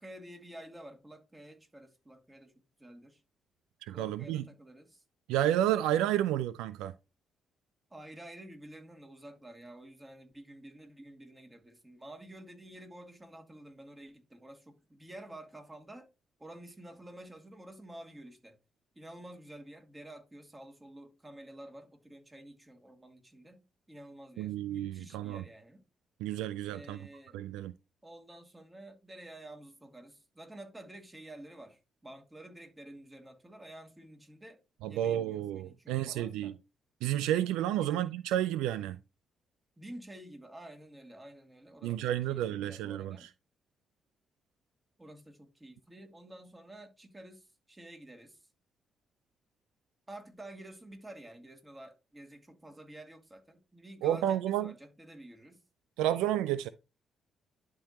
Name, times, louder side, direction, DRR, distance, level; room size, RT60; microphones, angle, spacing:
voice 1, 0.0-2.5 2.8-3.2 3.9-5.0 7.9-16.1 16.4-18.6 19.0-25.9 26.7-27.4 28.0-36.6 37.8-38.0 39.8-43.3 45.0-48.5 50.1-55.6, right 1 dB, 20° right, 2.4 m, -50 dB
voice 2, 3.8-4.4 5.3-6.9 24.4-25.4 26.2-27.0 27.3-27.7 34.8-36.5 37.0-39.0 41.8-43.3 54.0-54.7 56.0-56.7, right 12 dB, 80° right, 0.3 m, -31 dB
11.5 x 3.8 x 2.9 m
hypercardioid pair, 45°, 0 cm